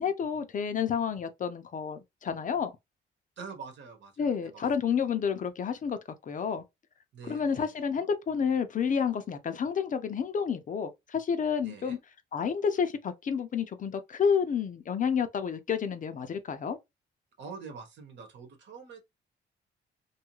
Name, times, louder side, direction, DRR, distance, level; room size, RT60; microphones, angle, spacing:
voice 1, 0.0-2.7 4.2-6.6 7.3-12.0 12.3-16.8, left 6 dB, 40° left, 0.5 m, -30 dB
voice 2, 3.4-4.9 7.1-7.7 11.6-12.0 17.4-19.0, right 5 dB, 65° right, 1.1 m, -45 dB
2.6 x 2.3 x 2.9 m
cardioid pair, 90°, 20 cm